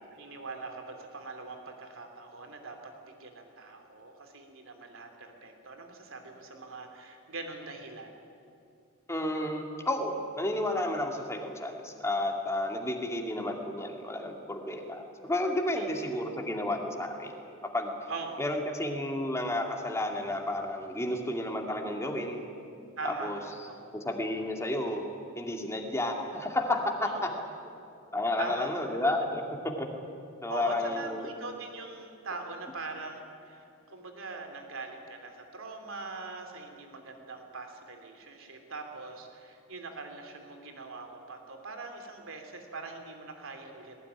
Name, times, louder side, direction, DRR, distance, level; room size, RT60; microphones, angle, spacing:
voice 1, 0.1-2.9 3.2-8.1 15.7-15.9 18.1-18.5 23.0-24.0 27.0-27.4 28.4-29.0 30.5-44.0, right 3 dB, 65° right, 5 dB, 3.3 m, -42 dB
voice 2, 9.1-17.4 17.7-17.9 18.4-22.4 23.0-23.4 23.9-25.0 25.4-27.3 28.1-29.4 29.8-29.9 30.4-31.3, left 1 dB, 15° left, 2 dB, 2.3 m, -31 dB
19.5 x 19.0 x 9.9 m, 2.6 s
head